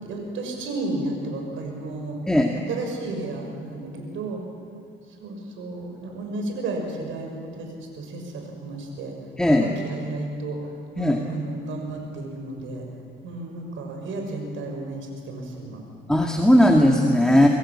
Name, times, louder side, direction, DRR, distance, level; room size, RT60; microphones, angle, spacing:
voice 1, 0.0-2.2 2.7-4.4 5.2-9.1 9.6-10.6 10.9-12.8 13.2-15.8, right 2 dB, 85° right, 3 dB, 6.5 m, -32 dB
voice 2, 9.4-9.7 11.0-11.2 16.1-17.5, left 1 dB, 5° left, 1 dB, 2.2 m, -17 dB
28.5 x 21.5 x 8.8 m, 2.2 s
cardioid pair, 90°, 20 cm